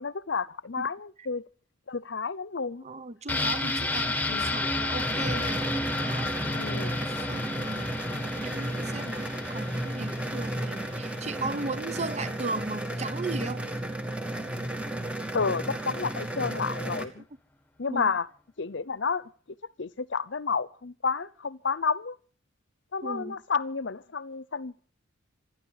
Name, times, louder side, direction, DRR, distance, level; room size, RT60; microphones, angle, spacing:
voice 1, 0.0-1.4 1.9-2.8 4.3-4.5 6.5-7.1 15.3-17.2 17.8-18.3 18.6-19.3 19.8-22.2 22.9-24.7, left 5 dB, 65° left, 0.7 m, -31 dB
voice 2, 2.8-6.3 7.3-7.9 8.4-13.7 17.9-18.1 23.0-23.4, right 3 dB, 35° right, 0.8 m, -36 dB
sound 1, 3.3-12.9 13.2-13.3, left 2 dB, 10° left, 1.7 m, -32 dB
sound 2, 5.0-17.0, right 1 dB, 5° right, 1.9 m, -33 dB
27.5 x 10.5 x 4.9 m
head